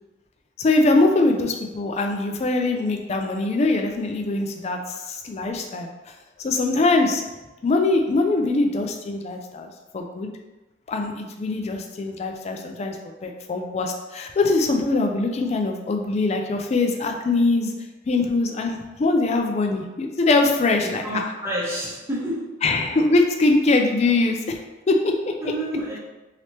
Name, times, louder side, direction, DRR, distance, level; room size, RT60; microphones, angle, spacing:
voice 1, 0.6-4.8 5.1-5.9 6.4-7.2 7.6-10.3 10.9-13.0 13.2-17.7 18.1-21.2 22.6-24.6 24.9-25.3, left 3 dB, 35° left, 3 dB, 0.4 m, -22 dB
voice 2, 20.8-22.5 25.4-26.0, right 1 dB, 15° right, -7 dB, 0.8 m, -29 dB
3.3 x 2.9 x 2.8 m, 1.1 s
head